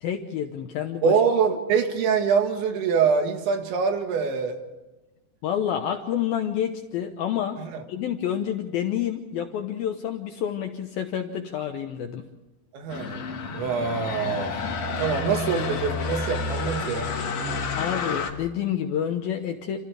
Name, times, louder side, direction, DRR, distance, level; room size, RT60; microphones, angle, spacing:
voice 1, 0.0-1.2 5.4-7.6 7.9-12.2 17.8-19.8, left 9 dB, 75° left, 5 dB, 2.2 m, -28 dB
voice 2, 1.0-4.6 7.6-7.8 12.7-13.2 13.5-14.5 15.0-17.1, right 6 dB, 75° right, 5 dB, 4.1 m, -24 dB
sound 1, 12.9-18.3, left 4 dB, 55° left, 1.7 m, -30 dB
29.0 x 27.5 x 3.5 m, 1.1 s
omnidirectional pair, 5.4 m